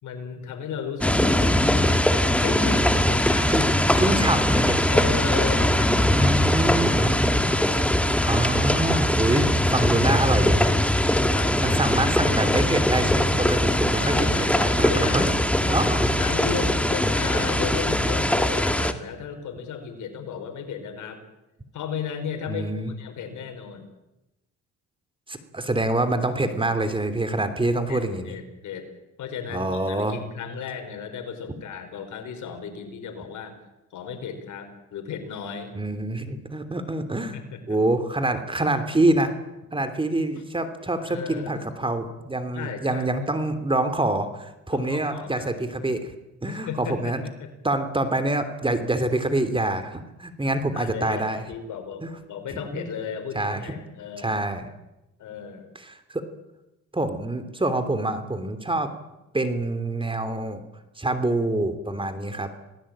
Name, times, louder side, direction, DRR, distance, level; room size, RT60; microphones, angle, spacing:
voice 1, 0.0-1.6 2.4-4.6 4.8-6.8 11.3-12.0 14.0-15.4 15.8-21.2 21.7-23.9 27.9-28.0 28.3-28.9 29.2-33.5 33.9-35.7 37.3-37.8 41.0-41.7 42.5-43.1 44.7-45.5 46.5-47.5 50.7-54.4 55.2-55.7, left 6 dB, 80° left, 7 dB, 4.8 m, -35 dB
sound 1, 1.0-18.9, left 1 dB, 5° left, 1.9 m, -21 dB
voice 2, 4.0-4.8 6.1-7.2 8.2-10.8 11.6-15.4 15.7-16.1 22.5-22.9 25.3-28.4 29.5-30.2 35.7-37.4 37.7-39.3 39.7-46.1 46.4-47.2 47.6-51.4 52.0-52.2 52.5-52.9 53.3-53.8 54.2-54.7 55.7-56.2 56.9-58.9 59.3-60.6 61.0-62.5, right 2 dB, 15° right, 9 dB, 3.2 m, -26 dB
27.5 x 19.0 x 8.9 m, 0.97 s
cardioid pair, 90°, 30 cm